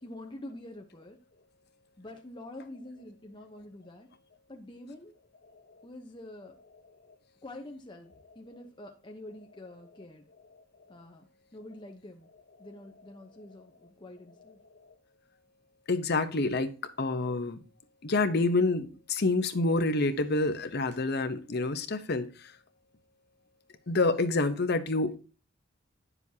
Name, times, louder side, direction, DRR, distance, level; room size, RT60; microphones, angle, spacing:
voice 1, 0.0-1.2 2.0-4.1 4.5-5.2 5.8-6.5 7.4-10.2 10.9-11.3 11.5-12.3 12.6-14.6, left 1 dB, 25° left, 0.9 m, -46 dB
voice 2, 15.9-17.6 18.0-22.3 23.9-25.2, left 3 dB, 55° left, 0.8 m, -27 dB
9.8 x 7.0 x 2.8 m
head